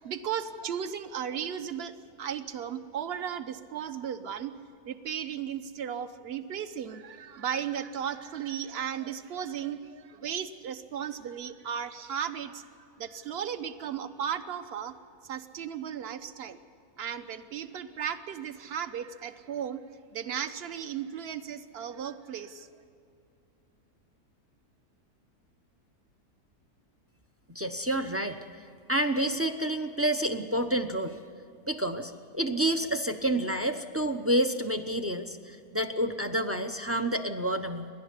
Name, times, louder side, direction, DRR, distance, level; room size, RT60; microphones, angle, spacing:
voice 1, 0.0-4.5 4.9-12.6 13.0-14.9 15.2-16.6 17.0-19.8 20.1-22.7, right 8 dB, 45° right, 10 dB, 1.1 m, -35 dB
voice 2, 27.5-28.4 28.9-31.2 31.7-37.9, right 1 dB, 15° right, 8 dB, 0.5 m, -29 dB
28.5 x 12.0 x 8.3 m, 2.5 s
omnidirectional pair, 1.7 m